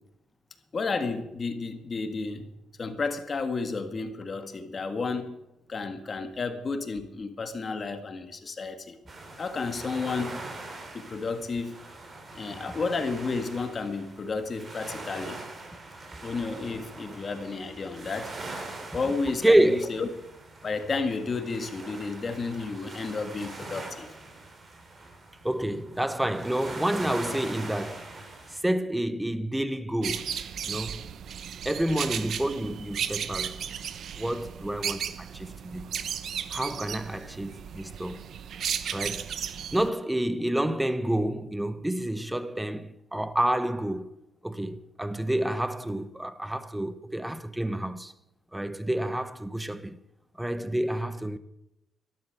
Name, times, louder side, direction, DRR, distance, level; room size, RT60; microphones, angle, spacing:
voice 1, 0.7-2.5 2.8-5.4 5.7-9.0 9.4-10.4 10.9-11.8 12.3-15.4 16.2-18.3 18.9-20.1 20.6-24.1, left 4 dB, 40° left, 1.9 m, -32 dB
sound 1, 9.1-28.6, right 2 dB, 35° right, 3.3 m, -42 dB
voice 2, 19.4-19.9 25.4-28.0 28.5-30.3 30.6-31.0 31.6-33.6 34.1-35.9 36.5-38.2 38.9-39.3 39.7-44.1 44.4-48.1 48.5-50.0 50.4-51.4, right 1 dB, 5° right, 0.9 m, -28 dB
sound 2, 30.0-39.9, right 8 dB, 65° right, 0.9 m, -35 dB
12.5 x 11.5 x 6.8 m
cardioid pair, 90°, 0 cm